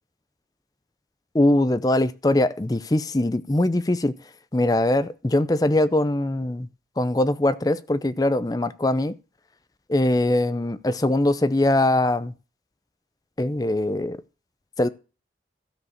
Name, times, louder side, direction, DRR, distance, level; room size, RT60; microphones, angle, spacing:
voice 1, 1.3-4.1 4.5-6.7 7.0-9.1 9.9-12.3 13.4-14.2 14.8-14.9, left 1 dB, 20° left, 0.5 m, -22 dB
13.0 x 4.9 x 6.4 m
head